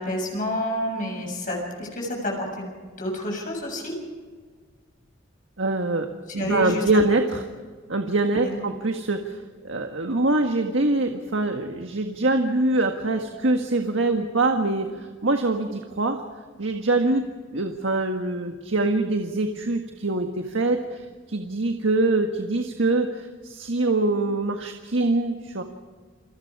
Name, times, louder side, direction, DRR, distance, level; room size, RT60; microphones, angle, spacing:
voice 1, 0.0-2.7 3.0-3.9 6.4-6.8 8.3-8.6, left 1 dB, 45° left, -1 dB, 7.2 m, -29 dB
voice 2, 5.6-6.1 6.3-7.4 7.9-16.2 16.6-25.6, right 2 dB, 75° right, 4 dB, 1.7 m, -24 dB
29.0 x 23.5 x 4.9 m, 1.5 s
head